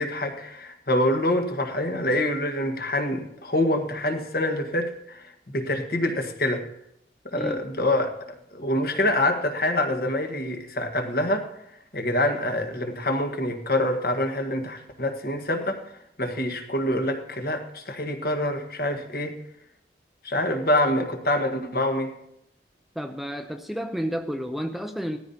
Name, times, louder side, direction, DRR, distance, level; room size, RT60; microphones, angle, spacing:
voice 1, 0.0-6.6 7.3-8.1 8.5-11.5 11.9-15.8 16.2-19.4 20.2-22.1, left 1 dB, 55° left, 5 dB, 1.4 m, -26 dB
voice 2, 23.0-25.2, equal, ahead, 5 dB, 0.5 m, -31 dB
17.5 x 14.0 x 2.8 m, 0.81 s
head